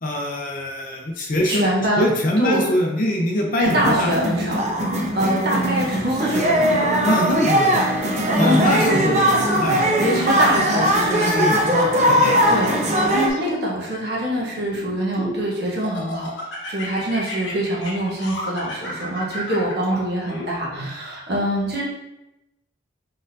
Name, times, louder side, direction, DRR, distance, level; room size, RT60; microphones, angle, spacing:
voice 1, 0.0-4.1 7.0-7.8 8.4-10.0 11.2-11.5 12.0-12.6, left 1 dB, 45° left, 1 dB, 0.6 m, -23 dB
voice 2, 1.4-2.0 2.4-2.6 3.6-4.6 5.1-6.9 8.4-9.4 10.0-16.3 16.7-21.8, equal, 55° right, -3 dB, 1.0 m, -24 dB
sound 1, 3.6-13.3, equal, 35° right, 0.5 m, -20 dB
Laughter, 12.4-13.7 14.3-15.4 15.8-20.9, left 1 dB, 75° left, 1.1 m, -33 dB
4.2 x 3.7 x 2.6 m, 0.94 s
head